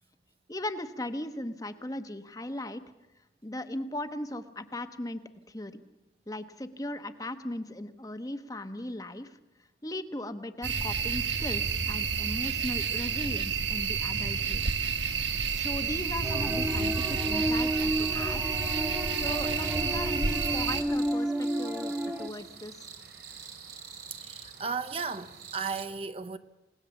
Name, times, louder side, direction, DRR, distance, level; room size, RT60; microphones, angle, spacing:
voice 1, 0.5-2.8 3.4-5.2 5.5-5.8 6.3-9.4 9.8-14.6 15.5-18.4 19.1-22.9, left 1 dB, 20° left, 1.1 m, -38 dB
sound 1, 10.6-20.8, right 6 dB, 90° right, 1.4 m, -30 dB
sound 2, 14.6-25.9, right 6 dB, 70° right, 3.1 m, -47 dB
sound 3, 16.2-22.3, equal, 10° right, 1.3 m, -32 dB
voice 2, 24.2-26.4, right 5 dB, 35° right, 0.7 m, -35 dB
29.0 x 18.5 x 7.1 m
head